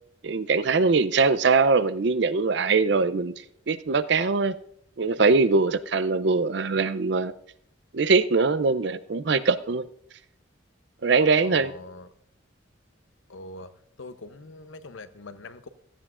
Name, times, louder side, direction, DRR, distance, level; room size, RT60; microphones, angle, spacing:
voice 1, 0.2-3.3 3.7-4.6 5.0-7.3 7.9-9.8 11.0-11.7, right 4 dB, 60° right, 0.5 m, -22 dB
voice 2, 11.4-12.1 13.3-13.7 14.0-15.7, left 2 dB, 80° left, 0.8 m, -43 dB
16.5 x 13.5 x 2.5 m
head